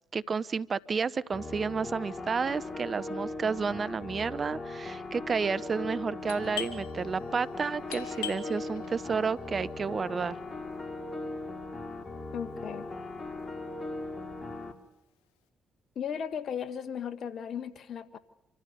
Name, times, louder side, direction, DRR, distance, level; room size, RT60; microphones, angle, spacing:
voice 1, 0.1-10.4, right 5 dB, 45° right, 17 dB, 0.8 m, -31 dB
sound 1, 1.3-14.7, left 2 dB, 35° left, 3.5 m, -39 dB
Doorbell, 6.3-11.7, left 9 dB, 85° left, 1.8 m, -43 dB
voice 2, 12.3-12.9 15.9-18.2, left 8 dB, 60° left, 12 dB, 1.6 m, -36 dB
27.0 x 14.5 x 6.9 m, 0.93 s
hypercardioid pair, 45°, 0 cm